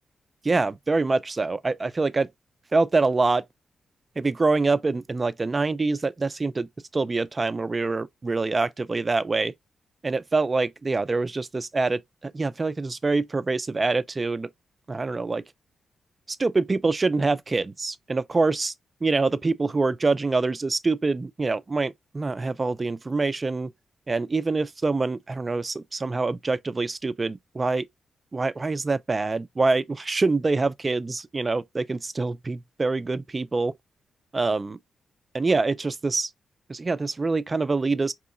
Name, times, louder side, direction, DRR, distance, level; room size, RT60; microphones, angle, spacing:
voice 1, 0.4-2.3 2.7-3.4 4.2-9.5 10.0-14.5 14.9-15.4 16.3-18.7 19.0-23.7 24.1-27.9 28.3-33.7 34.3-34.8 35.3-36.3 36.7-38.1, right 3 dB, 25° right, 0.3 m, -25 dB
4.7 x 3.0 x 2.4 m
wide cardioid pair, 130°, 0 cm